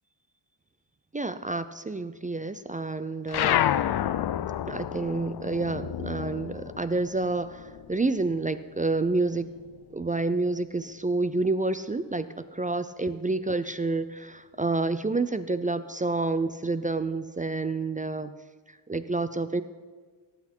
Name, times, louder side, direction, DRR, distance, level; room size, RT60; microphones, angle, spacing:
voice 1, 1.1-3.6 4.7-9.5 9.9-18.3 18.7-19.6, right 3 dB, 15° right, 13 dB, 0.4 m, -29 dB
sound 1, 3.3-8.2 8.5-9.9, left 11 dB, 55° left, 0.6 m, -30 dB
18.5 x 8.3 x 4.4 m, 1.5 s
cardioid pair, 70°, 48 cm